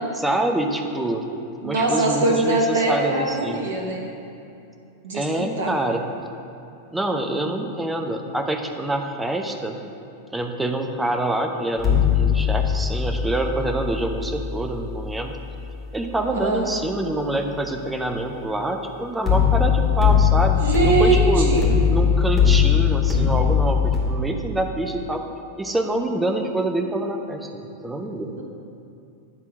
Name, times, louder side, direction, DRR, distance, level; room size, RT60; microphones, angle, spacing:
voice 1, 0.1-1.2 1.6-3.6 5.1-6.0 6.9-9.8 10.3-15.4 15.9-20.6 20.8-21.6 21.9-25.2 25.6-28.3, right 1 dB, 10° right, 4 dB, 0.6 m, -26 dB
voice 2, 1.6-4.0 5.0-5.7 16.4-16.7 20.6-21.7, right 3 dB, 60° right, 0 dB, 0.9 m, -22 dB
sound 1, 11.8-16.9 19.3-24.0, left 7 dB, 15° left, 2.0 m, -21 dB
9.5 x 3.7 x 6.1 m, 2.7 s
figure-of-eight pair, 90°, 0 cm